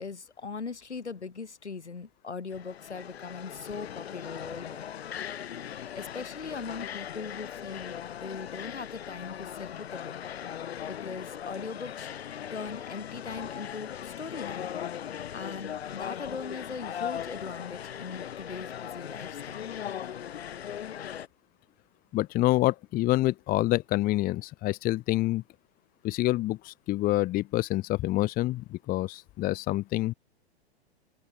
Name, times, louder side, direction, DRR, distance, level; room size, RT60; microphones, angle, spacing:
voice 1, 0.0-4.9 5.9-10.1 10.8-12.1 12.5-14.7 15.3-19.7, left 5 dB, 80° left, 4.8 m, -40 dB
sound 1, 2.5-21.3, left 9 dB, 65° left, 3.6 m, -39 dB
voice 2, 22.1-25.4 26.0-30.1, left 17 dB, 25° left, 0.9 m, -27 dB
open air
figure-of-eight pair, 105°, 34 cm